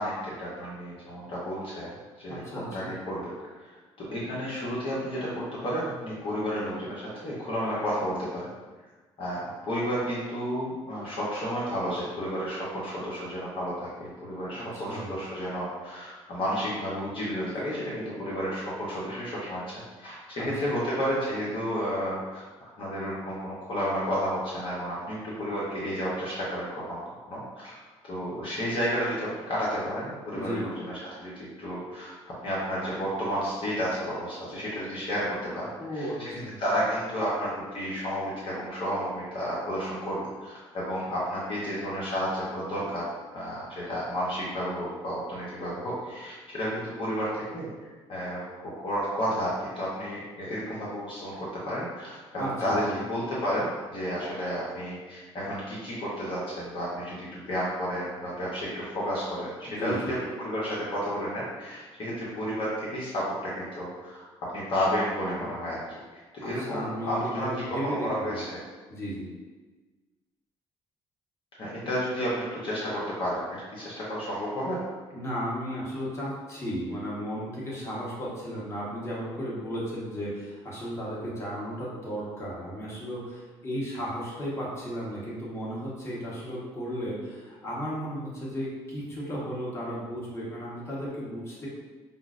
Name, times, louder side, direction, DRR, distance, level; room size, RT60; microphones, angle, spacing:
voice 1, 0.0-1.9 2.2-3.3 4.0-8.5 9.2-27.0 27.3-30.9 31.2-32.2 32.4-35.3 35.5-36.1 36.6-43.0 43.3-64.3 64.5-65.8 66.1-68.6 71.6-73.4 73.7-74.8, equal, 50° left, -7 dB, 0.9 m, -32 dB
voice 2, 2.3-2.9 14.5-15.1 17.4-17.7 20.4-20.8 30.3-30.7 35.8-36.6 52.4-53.0 59.7-60.1 65.4-65.5 66.4-68.4 68.9-69.3 75.1-91.7, equal, 25° left, -6 dB, 1.2 m, -35 dB
5.5 x 2.0 x 2.5 m, 1.3 s
cardioid pair, 90°, 11 cm